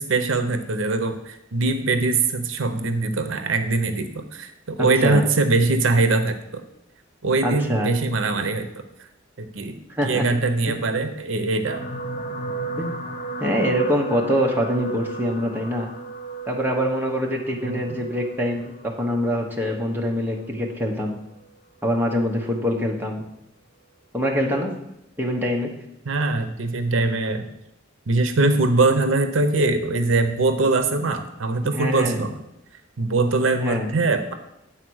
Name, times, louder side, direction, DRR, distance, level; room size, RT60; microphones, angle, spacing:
voice 1, 0.0-6.6 7.2-8.7 9.4-9.8 10.0-11.8 17.6-18.0 26.0-27.5 28.1-32.4 33.0-34.3, right 3 dB, 80° right, 9 dB, 0.7 m, -22 dB
voice 2, 4.8-5.2 7.4-7.9 9.9-10.3 10.7-10.8 12.8-13.0 13.4-15.9 16.5-21.2 21.8-23.2 24.1-24.7 25.2-25.7 31.6-32.2 33.6-33.9, equal, 10° right, 0 dB, 1.0 m, -24 dB
sound 1, 11.7-20.1 20.9-21.1 21.4-21.5, right 3 dB, 40° left, 0.9 m, -34 dB
8.8 x 4.1 x 6.3 m, 0.85 s
head